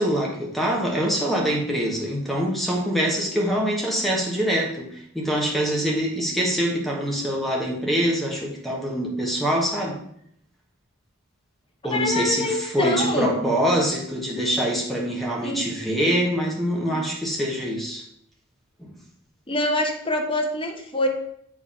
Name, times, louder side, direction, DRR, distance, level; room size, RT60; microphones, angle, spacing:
voice 1, 0.0-10.0 11.8-18.0 18.8-18.9, equal, ahead, -2 dB, 1.2 m, -24 dB
voice 2, 11.9-13.3 15.4-15.6 19.5-21.1, left 2 dB, 25° left, 2 dB, 1.0 m, -25 dB
7.3 x 3.5 x 5.6 m, 0.69 s
head